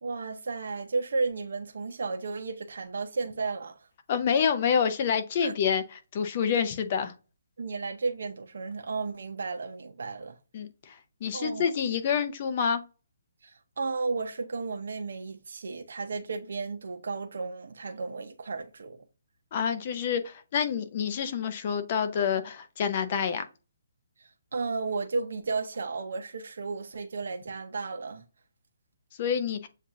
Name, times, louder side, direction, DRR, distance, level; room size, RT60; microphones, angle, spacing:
voice 1, 0.0-3.8 5.4-5.5 7.6-10.3 11.3-11.7 13.4-19.0 24.2-28.2, right 4 dB, 65° right, 0.7 m, -33 dB
voice 2, 4.1-7.1 10.5-12.8 19.5-23.4 29.2-29.7, left 7 dB, 30° left, 0.6 m, -28 dB
7.2 x 2.5 x 2.6 m
hypercardioid pair, 170°, 0 cm